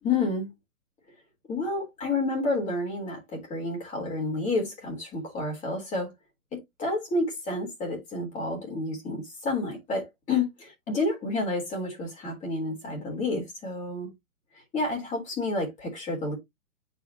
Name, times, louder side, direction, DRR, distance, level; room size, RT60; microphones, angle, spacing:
voice 1, 0.0-0.5 1.5-6.1 6.5-14.1 14.7-16.3, left 2 dB, 15° left, 3.6 m, -30 dB
9.9 x 5.0 x 2.8 m
hypercardioid pair, 140°, 45 cm